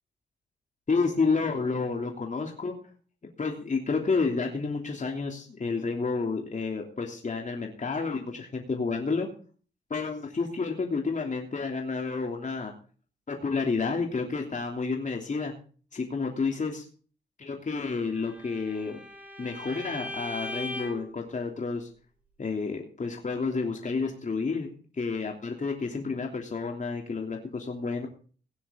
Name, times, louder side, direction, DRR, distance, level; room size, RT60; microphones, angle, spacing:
voice 1, 0.9-2.7 3.4-9.3 9.9-12.7 13.3-15.5 15.9-16.8 17.4-19.0 19.4-21.9 22.4-28.1, left 4 dB, 40° left, 2 dB, 3.1 m, -30 dB
Bowed string instrument, 18.1-21.1, left 1 dB, 10° right, 5.2 m, -39 dB
18.0 x 10.0 x 3.8 m, 0.40 s
cardioid pair, 60°, 19 cm